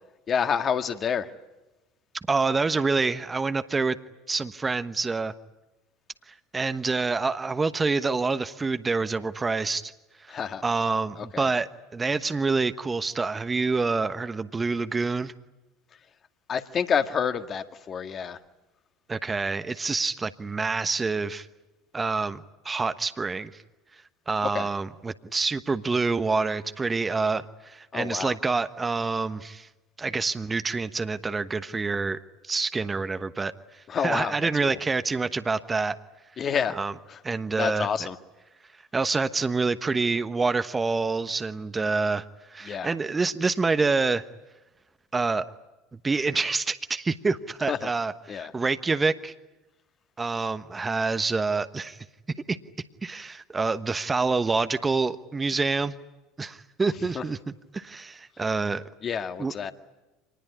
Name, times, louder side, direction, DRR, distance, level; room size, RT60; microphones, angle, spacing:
voice 1, 0.3-1.3 10.3-10.6 11.2-11.5 16.5-18.4 24.4-24.7 27.9-28.4 33.9-34.8 36.4-36.8 37.1-37.2 37.6-38.2 42.6-42.9 47.7-47.9 48.3-48.5 57.1-57.2 59.0-59.7, left 7 dB, 35° left, 8 dB, 1.9 m, -28 dB
voice 2, 2.3-4.0 4.3-5.3 6.3-9.9 10.6-15.3 19.1-21.5 21.9-23.5 24.3-29.7 30.0-32.2 32.4-36.0 36.7-36.9 37.2-37.9 38.9-44.2 45.1-45.5 46.0-49.3 50.2-52.0 52.5-52.6 53.0-55.9 56.4-57.4 57.7-58.8 59.4-59.5, right 4 dB, 20° right, 11 dB, 1.1 m, -27 dB
26.0 x 20.0 x 9.9 m, 1.1 s
hypercardioid pair, 70°, 0 cm